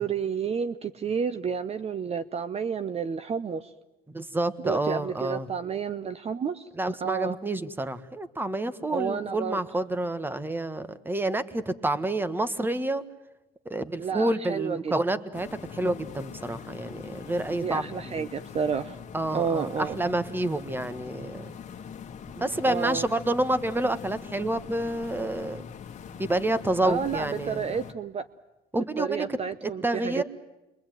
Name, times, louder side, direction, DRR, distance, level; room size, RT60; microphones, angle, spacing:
voice 1, 0.0-3.7 4.6-6.7 7.0-7.4 8.9-9.6 14.0-14.9 17.6-19.0 19.3-20.0 22.7-23.0 26.8-28.3 29.0-30.2, right 6 dB, 35° right, 12 dB, 0.9 m, -30 dB
voice 2, 4.1-5.5 6.8-13.0 13.6-18.3 19.1-21.5 22.3-25.6 26.2-27.7 28.7-30.2, right 1 dB, 10° right, 13 dB, 1.5 m, -29 dB
sound 1, 15.3-27.9, left 7 dB, 45° left, 1.8 m, -42 dB
28.5 x 23.0 x 9.2 m, 1.0 s
cardioid pair, 110°, 17 cm